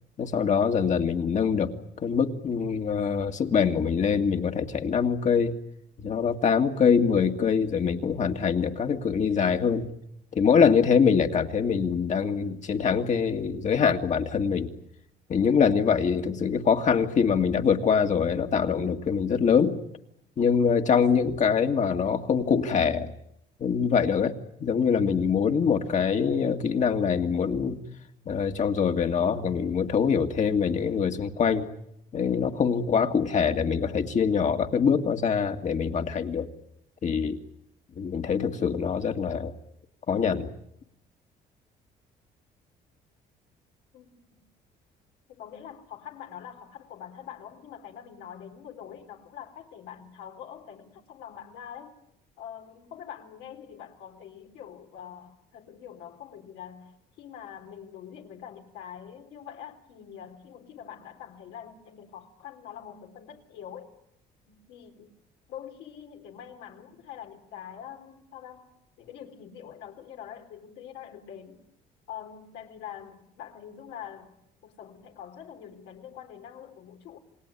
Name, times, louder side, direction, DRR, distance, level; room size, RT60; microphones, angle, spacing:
voice 1, 0.2-1.7 2.0-5.5 6.0-9.9 10.3-14.7 15.3-19.8 20.4-23.1 23.6-24.3 24.6-27.8 28.3-31.7 32.1-36.5 37.0-37.4 38.0-39.5 40.1-40.5, left 6 dB, 45° left, 5 dB, 2.1 m, -24 dB
voice 2, 43.9-44.4 45.3-51.9 52.4-63.9 64.5-65.1 65.5-71.6 72.1-74.3 74.6-77.2, left 9 dB, 85° left, 3 dB, 3.6 m, -44 dB
28.0 x 20.0 x 9.9 m, 0.77 s
cardioid pair, 110°, 17 cm